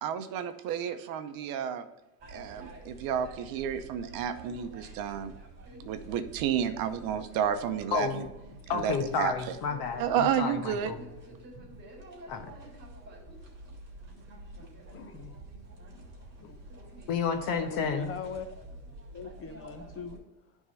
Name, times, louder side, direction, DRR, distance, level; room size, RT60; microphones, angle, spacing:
voice 1, 0.0-1.8 2.3-5.3 5.9-8.3 8.7-9.6 10.0-10.9, right 8 dB, 55° right, 9 dB, 0.8 m, -31 dB
sound 1, 2.2-20.2, right 1 dB, 25° right, 3.3 m, -48 dB
voice 2, 7.9-8.2 8.7-11.0 12.3-12.5 17.1-18.1, left 6 dB, 50° left, 6 dB, 1.2 m, -31 dB
voice 3, 14.6-15.4 16.4-16.7 17.7-18.5 19.1-20.2, left 5 dB, 30° left, 7 dB, 1.0 m, -41 dB
11.0 x 3.6 x 5.5 m, 1.0 s
supercardioid pair, 125°, 43 cm